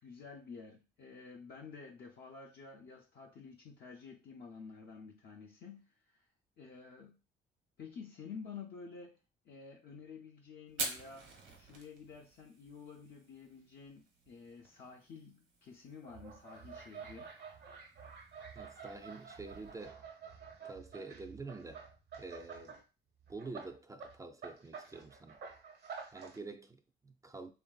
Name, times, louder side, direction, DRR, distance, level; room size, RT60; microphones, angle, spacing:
voice 1, 0.0-6.3 6.6-7.2 7.8-9.2 9.4-17.3, left 5 dB, 55° left, 0.5 m, -51 dB
Fire, 10.7-19.9, right 3 dB, 75° right, 1.1 m, -48 dB
sound 1, 16.0-22.8 23.2-26.4, right 5 dB, 55° right, 0.7 m, -50 dB
voice 2, 18.5-20.0 20.6-21.8 22.2-22.8 23.3-25.4 26.1-27.5, right 3 dB, 15° right, 0.3 m, -47 dB
3.0 x 2.6 x 2.3 m
cardioid pair, 90°, 20 cm